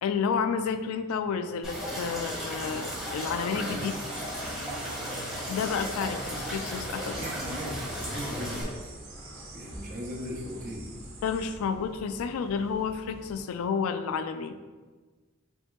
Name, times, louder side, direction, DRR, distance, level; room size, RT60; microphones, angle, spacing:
voice 1, 0.0-3.9 5.5-7.2 11.2-14.6, left 6 dB, 85° left, 11 dB, 0.3 m, -30 dB
sound 1, 1.6-8.6, equal, ahead, 1.5 m, -35 dB
voice 2, 3.4-3.9 7.1-8.9 9.5-10.9, equal, 40° right, -1 dB, 0.7 m, -38 dB
sound 2, 3.8-11.5, right 4 dB, 85° right, 1.1 m, -48 dB
sound 3, 8.4-13.4, equal, 30° left, 1.4 m, -47 dB
5.3 x 3.6 x 2.3 m, 1.4 s
head